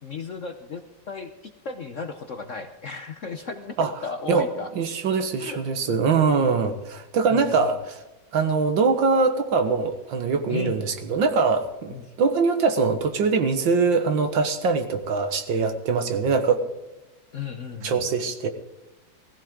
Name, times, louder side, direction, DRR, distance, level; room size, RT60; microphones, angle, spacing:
voice 1, 0.0-4.7 5.4-5.6 7.3-7.7 10.5-10.7 11.9-12.1 17.3-18.1, left 5 dB, 50° left, 7 dB, 1.0 m, -35 dB
voice 2, 4.8-8.0 8.3-16.6 17.8-18.5, right 4 dB, 70° right, 8 dB, 2.0 m, -23 dB
17.5 x 15.5 x 3.8 m, 1.0 s
omnidirectional pair, 2.2 m